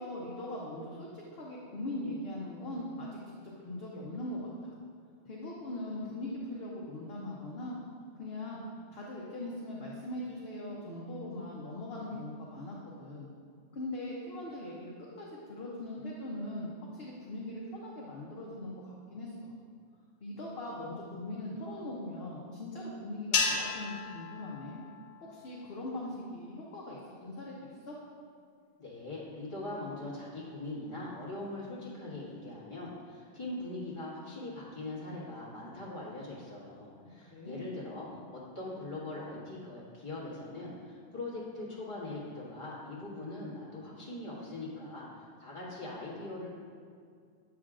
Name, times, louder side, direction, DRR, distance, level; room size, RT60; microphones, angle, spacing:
voice 1, 0.0-4.8 5.2-7.8 8.2-8.6 8.9-13.3 13.7-19.5 20.2-24.8 25.2-28.0 37.0-37.7, left 1 dB, 55° left, -4 dB, 0.8 m, -40 dB
sound 1, 23.3-25.8, left 4 dB, 80° left, 0.3 m, -34 dB
voice 2, 28.8-46.5, left 2 dB, 25° left, -9 dB, 1.6 m, -41 dB
7.4 x 6.0 x 2.5 m, 2.2 s
omnidirectional pair, 1.4 m